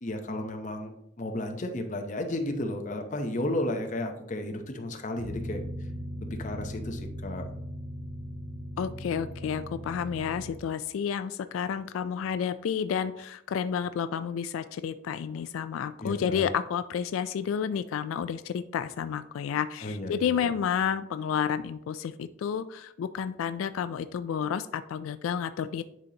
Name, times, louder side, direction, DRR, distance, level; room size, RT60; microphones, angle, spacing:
voice 1, 0.0-5.6 6.2-7.4 16.0-16.4 19.8-20.3, left 1 dB, 35° left, 4 dB, 0.7 m, -33 dB
sound 1, 5.2-10.5, equal, 25° right, 1.0 m, -38 dB
voice 2, 8.8-25.8, left 7 dB, 90° left, 13 dB, 0.3 m, -30 dB
10.0 x 4.0 x 2.8 m, 0.78 s
head